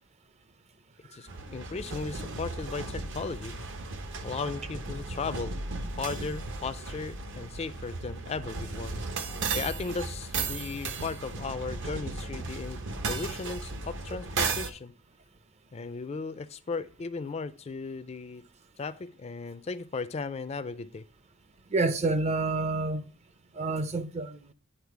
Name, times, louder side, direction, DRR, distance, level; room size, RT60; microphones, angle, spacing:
voice 1, 1.1-3.6 4.2-5.6 6.0-8.9 9.5-12.8 13.1-14.9 15.7-18.4 18.8-21.0, left 4 dB, 30° left, 0.4 m, -36 dB
sound 1, 1.3-14.7, right 3 dB, 60° right, 0.9 m, -35 dB
voice 2, 21.7-23.0 23.6-24.5, right 3 dB, 30° right, 0.6 m, -28 dB
10.0 x 4.3 x 4.6 m
head